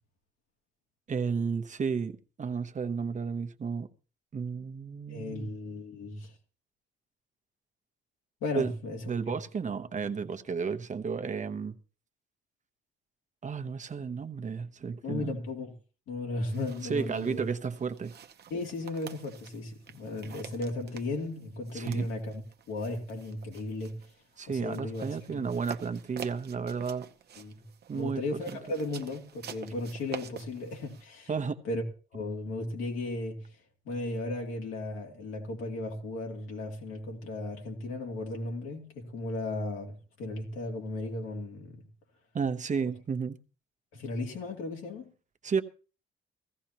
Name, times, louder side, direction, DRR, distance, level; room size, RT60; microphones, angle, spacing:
voice 1, 1.1-3.9 4.3-5.5 8.5-8.7 9.1-11.7 13.4-15.4 16.8-18.1 21.7-22.1 24.4-27.1 27.9-28.2 28.5-28.6 31.3-31.6 42.3-43.4 45.4-45.6, right 5 dB, 40° right, 1.0 m, -32 dB
voice 2, 5.1-6.3 8.4-9.0 15.0-15.7 16.1-17.4 18.5-22.4 22.7-24.0 24.5-25.4 27.4-27.6 27.9-31.3 31.6-31.8 32.1-33.4 33.8-39.9 40.2-41.8 43.9-45.1, left 2 dB, 90° left, 2.8 m, -35 dB
sound 1, 16.5-31.1, right 8 dB, 55° right, 0.9 m, -48 dB
16.5 x 14.5 x 2.9 m
cardioid pair, 90°, 20 cm